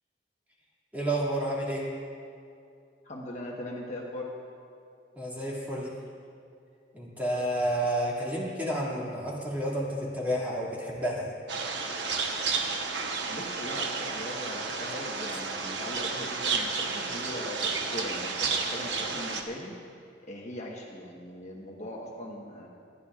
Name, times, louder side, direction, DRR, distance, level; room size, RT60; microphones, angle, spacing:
voice 1, 0.9-1.9 5.1-5.9 6.9-11.3, right 1 dB, 10° right, -5 dB, 2.2 m, -30 dB
voice 2, 3.0-4.3 13.3-20.0 20.3-22.7, left 1 dB, 40° left, -2 dB, 1.2 m, -40 dB
sound 1, 11.5-19.4, right 4 dB, 75° right, 1.0 m, -32 dB
27.0 x 10.0 x 2.4 m, 2.4 s
head